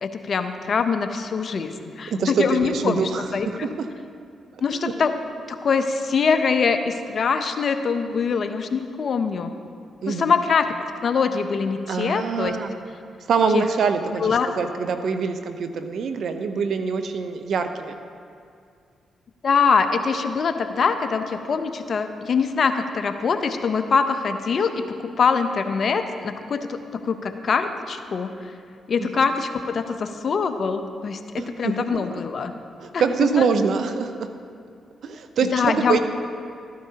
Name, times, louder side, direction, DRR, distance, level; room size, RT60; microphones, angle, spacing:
voice 1, 0.0-3.7 4.6-5.1 5.5-9.5 10.1-10.7 11.0-12.6 13.5-13.6 14.2-14.5 19.4-26.8 27.0-28.3 28.9-32.5 32.9-33.0 33.4-33.5 35.5-36.0, left 5 dB, 55° left, 8 dB, 0.7 m, -23 dB
voice 2, 2.1-3.3 3.8-3.9 10.0-10.3 11.9-12.8 13.3-18.0 29.0-29.1 31.4-32.2 32.8-34.1 35.0-36.0, right 5 dB, 70° right, 8 dB, 0.7 m, -24 dB
13.5 x 11.0 x 2.9 m, 2.3 s
supercardioid pair, 50°, 0 cm